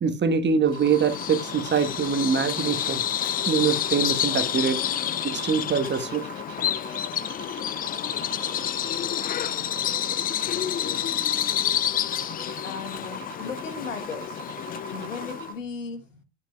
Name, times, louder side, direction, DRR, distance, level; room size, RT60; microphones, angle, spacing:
voice 1, 0.0-3.0 3.4-4.8 5.2-6.2, right 6 dB, 30° right, 1.3 m, -24 dB
sound 1, 0.6-15.5, right 6 dB, 90° right, 0.9 m, -42 dB
Bird vocalization bird call bird song, 0.7-15.5, left 11 dB, 25° left, 0.4 m, -29 dB
voice 2, 12.6-14.4 14.9-16.2, left 5 dB, 80° left, 1.2 m, -36 dB
10.0 x 8.1 x 2.3 m
figure-of-eight pair, 60°, 38 cm